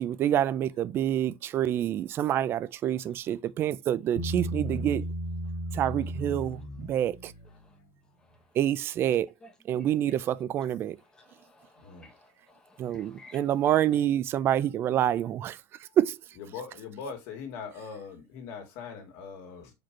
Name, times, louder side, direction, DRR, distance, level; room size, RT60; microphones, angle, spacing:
voice 1, 0.0-5.0 5.7-7.3 8.6-9.3 9.7-10.9 12.8-15.6 16.0-16.2, right 11 dB, 35° right, 0.5 m, -27 dB
Bass guitar, 4.2-7.6, right 1 dB, 50° left, 1.6 m, -35 dB
voice 2, 11.1-13.8, left 2 dB, 10° left, 1.1 m, -55 dB
voice 3, 16.4-19.7, left 6 dB, 70° left, 2.1 m, -41 dB
5.1 x 4.4 x 4.5 m
cardioid pair, 160°, 7 cm